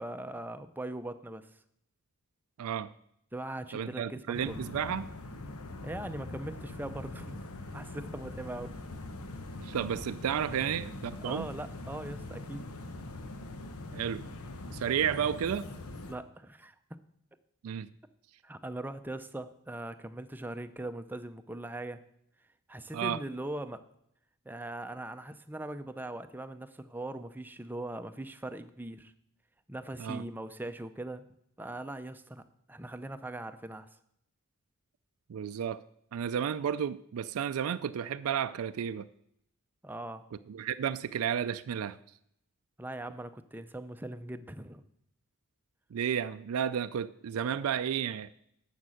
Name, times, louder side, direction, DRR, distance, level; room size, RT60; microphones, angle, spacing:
voice 1, 0.0-1.5 3.3-4.7 5.8-8.8 11.2-12.7 16.1-16.7 18.4-22.0 22.7-23.8 24.5-29.1 29.7-31.2 31.6-32.4 32.7-33.9 39.8-40.2 42.8-44.8, right 1 dB, 10° right, 9 dB, 0.5 m, -40 dB
voice 2, 2.6-2.9 3.7-5.1 9.6-11.5 13.9-14.2 14.7-15.7 17.6-17.9 22.9-23.2 30.0-30.2 35.3-35.8 36.1-39.1 40.5-42.0 45.9-48.3, right 8 dB, 85° right, 12 dB, 0.4 m, -32 dB
sound 1, 4.3-16.1, left 2 dB, 90° left, 1.0 m, -42 dB
11.0 x 7.3 x 6.3 m, 0.74 s
head